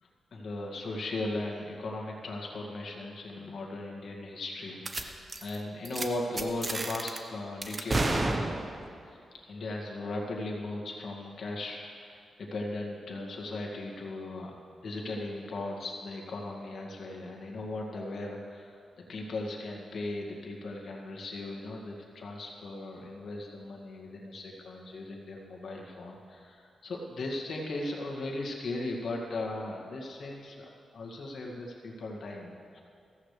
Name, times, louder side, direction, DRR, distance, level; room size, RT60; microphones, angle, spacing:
voice 1, 0.0-8.6 9.0-12.2 12.5-14.6 14.8-32.8, left 2 dB, 65° left, -1 dB, 2.1 m, -38 dB
sound 1, 4.9-5.0 5.3-5.6 5.9-6.1 6.4-7.2 7.6-8.9, right 2 dB, 30° right, 1.0 m, -31 dB
15.0 x 14.5 x 3.3 m, 2.4 s
cardioid pair, 90°, 0 cm